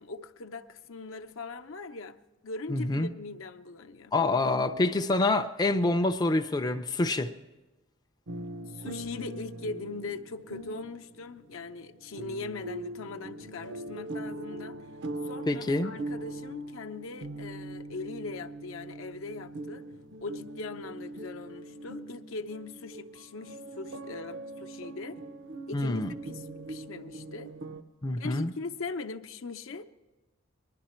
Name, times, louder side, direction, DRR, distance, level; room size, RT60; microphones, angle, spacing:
voice 1, 0.0-2.2 2.4-4.1 8.7-14.8 15.2-19.9 20.2-25.2 25.7-27.5 28.2-29.8, left 3 dB, 75° left, 0.7 m, -40 dB
voice 2, 2.7-3.1 4.1-7.3 15.5-15.9 25.7-26.1 28.0-28.5, left 2 dB, 20° left, 0.4 m, -26 dB
sound 1, 8.3-27.8, right 1 dB, 65° right, 0.7 m, -41 dB
20.0 x 11.5 x 4.3 m
head